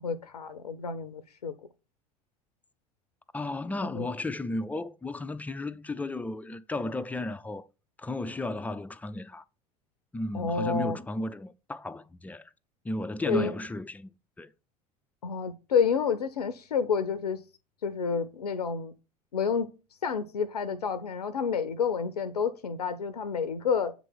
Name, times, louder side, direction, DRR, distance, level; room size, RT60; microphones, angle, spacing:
voice 1, 0.0-1.5 4.0-4.1 10.3-11.0 13.3-13.5 15.2-17.4 17.8-18.9 19.3-19.7 20.0-23.9, left 6 dB, 80° left, 0.5 m, -29 dB
voice 2, 3.3-7.7 8.0-9.4 10.1-12.4 12.8-14.1 14.4-14.5, left 2 dB, 10° left, 0.3 m, -34 dB
8.1 x 3.0 x 5.9 m
figure-of-eight pair, 70°, 20 cm